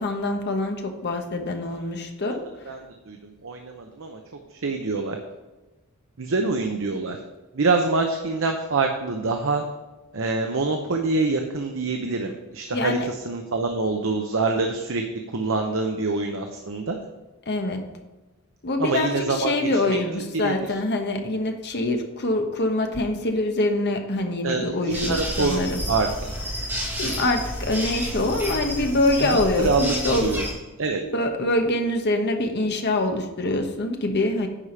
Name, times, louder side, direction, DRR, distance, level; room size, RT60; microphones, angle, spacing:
voice 1, 0.0-2.8 12.7-13.1 17.5-17.8 18.6-25.8 27.0-30.4 31.0-34.5, left 2 dB, 50° left, 4 dB, 1.2 m, -25 dB
voice 2, 3.1-4.2 4.6-5.2 6.2-7.2 7.5-9.6 10.1-17.0 18.8-19.5 19.8-20.0 20.4-20.5 24.4-25.6 25.9-26.1 29.6-29.9 30.2-30.4 30.8-31.0, right 3 dB, 65° right, 4 dB, 0.8 m, -25 dB
sound 1, 24.9-30.5, equal, 10° right, 2.3 m, -30 dB
9.9 x 4.9 x 5.7 m, 1.1 s
head